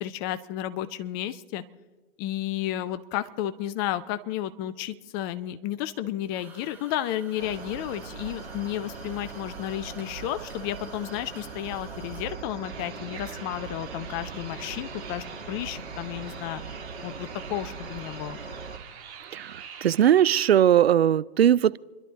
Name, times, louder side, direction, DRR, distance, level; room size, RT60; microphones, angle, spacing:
voice 1, 0.0-1.6 2.2-16.6 17.0-18.4, left 12 dB, 20° left, 13 dB, 0.5 m, -32 dB
sound 1, 6.2-12.3, right 2 dB, 5° right, 1.9 m, -51 dB
Cricket, 7.4-18.8, right 4 dB, 85° right, 2.2 m, -40 dB
sound 2, 12.6-20.5, right 8 dB, 35° right, 1.9 m, -45 dB
voice 2, 19.3-21.8, right 10 dB, 65° right, 19 dB, 0.5 m, -20 dB
28.5 x 12.0 x 4.0 m, 1.3 s
figure-of-eight pair, 115°, 34 cm